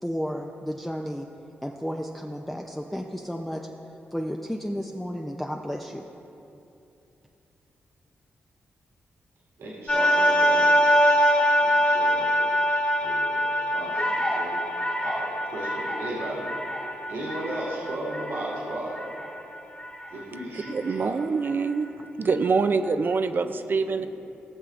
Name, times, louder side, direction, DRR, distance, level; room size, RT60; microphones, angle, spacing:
voice 1, 0.0-1.3 1.6-3.7 4.1-6.0, equal, 5° left, 1 dB, 0.5 m, -32 dB
voice 2, 9.6-11.0 11.6-12.5 13.0-14.6 15.0-16.5 17.1-19.0 20.1-21.2 22.6-22.7 23.9-24.1, right 1 dB, 85° right, -7 dB, 2.1 m, -36 dB
sound 1, 9.9-20.1 20.7-20.8, equal, 35° left, 1.8 m, -24 dB
voice 3, 20.7-21.9 22.2-24.1, right 4 dB, 50° right, 9 dB, 0.4 m, -25 dB
16.5 x 6.6 x 2.5 m, 2.8 s
cardioid pair, 60°, 4 cm